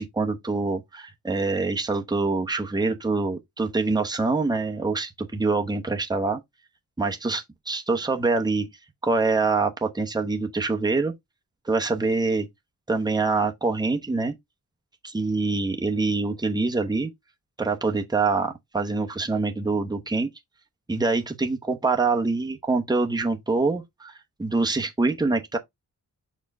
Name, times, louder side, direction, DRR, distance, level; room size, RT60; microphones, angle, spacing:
voice 1, 0.0-6.4 7.0-8.7 9.0-11.1 11.6-12.5 12.9-14.3 15.0-17.1 17.6-20.3 20.9-24.1 24.4-25.6, right 3 dB, 10° right, 0.9 m, -25 dB
6.2 x 4.4 x 3.5 m
wide cardioid pair, 105°, 34 cm